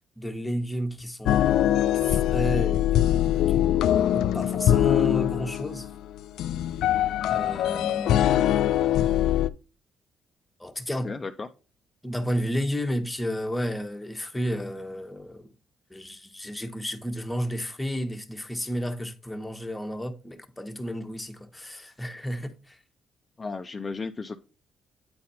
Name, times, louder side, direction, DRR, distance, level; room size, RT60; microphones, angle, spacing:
voice 1, 0.2-1.8 2.1-5.9 7.3-8.4 10.6-11.1 12.0-15.5 15.9-22.8, equal, 10° left, 1.2 m, -32 dB
sound 1, 1.3-9.5, left 12 dB, 80° left, 0.3 m, -23 dB
voice 2, 11.0-11.5 23.4-24.4, left 4 dB, 30° left, 0.6 m, -34 dB
8.6 x 4.1 x 4.2 m
cardioid pair, 90°, 0 cm